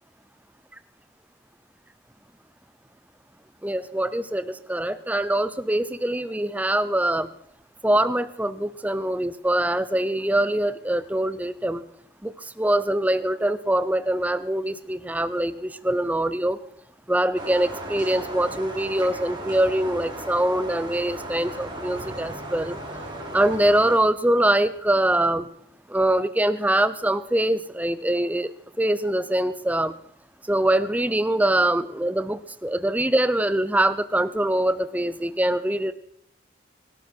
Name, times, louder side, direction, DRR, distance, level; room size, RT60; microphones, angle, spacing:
voice 1, 3.6-7.3 7.8-11.8 12.2-16.6 17.1-22.8 23.3-25.5 25.9-28.5 28.8-29.9 30.4-35.9, right 1 dB, 10° right, 13 dB, 0.7 m, -23 dB
sound 1, 17.4-24.0, right 1 dB, 25° right, 3.5 m, -36 dB
24.0 x 12.0 x 4.5 m, 0.72 s
head